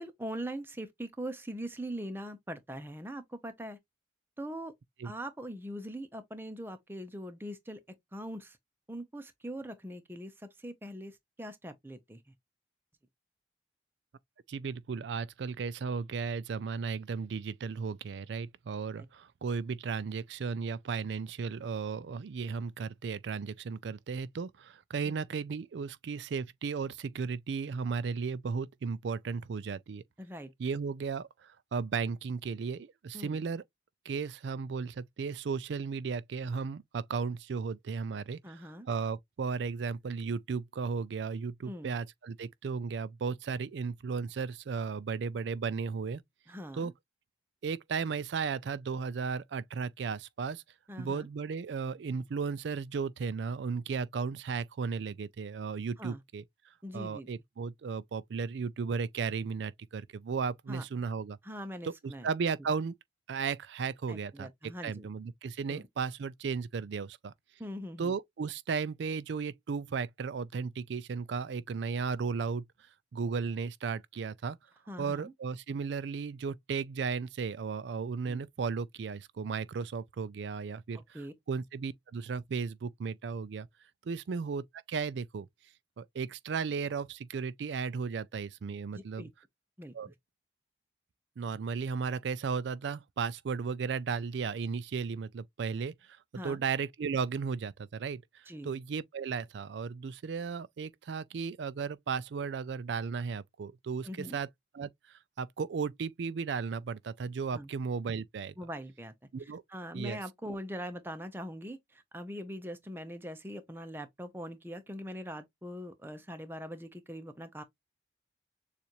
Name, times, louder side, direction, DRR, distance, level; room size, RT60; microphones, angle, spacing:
voice 1, 0.0-3.8 4.4-4.7 5.0-8.6 8.9-12.2 25.0-25.2 30.2-30.5 33.1-33.4 38.4-38.9 41.6-41.9 46.5-46.9 50.9-51.3 56.0-56.2 56.8-57.3 60.7-60.8 61.4-62.3 64.1-65.1 65.7-65.9 67.6-68.1 74.9-75.3 80.9-81.3 88.9-89.3 89.8-89.9 96.4-96.6 98.5-98.7 104.0-104.4 107.5-107.7 108.6-109.1 109.4-117.6, equal, 10° right, 0.7 m, -42 dB
voice 2, 14.5-30.0 30.6-33.6 34.1-46.2 46.7-46.9 47.6-50.6 51.0-56.4 56.9-61.4 61.8-62.9 63.3-67.3 68.0-72.6 73.1-74.6 75.0-83.7 84.1-85.5 86.0-89.3 89.9-90.1 91.4-96.2 96.4-104.5 104.7-104.9 105.4-108.5 109.3-109.6 109.9-110.2, right 5 dB, 80° right, 0.4 m, -35 dB
6.9 x 2.5 x 2.9 m
head